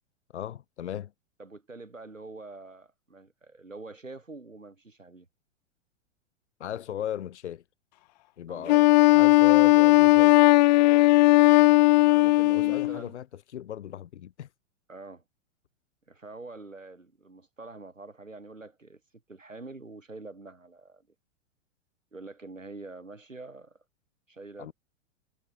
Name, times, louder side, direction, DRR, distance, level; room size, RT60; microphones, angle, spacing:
voice 1, 0.3-1.1 6.6-7.6 8.4-8.8 9.1-10.4 12.6-14.5 24.6-24.7, left 10 dB, 65° left, 3.7 m, -36 dB
voice 2, 1.4-5.3 8.5-8.9 11.0-11.8 12.1-13.1 14.9-15.2 16.1-19.0 19.3-21.1 22.1-23.8 24.3-24.7, right 3 dB, 90° right, 6.6 m, -45 dB
Wind instrument woodwind instrument, 8.7-13.0, left 19 dB, 35° left, 0.5 m, -18 dB
figure-of-eight pair, 100°, 37 cm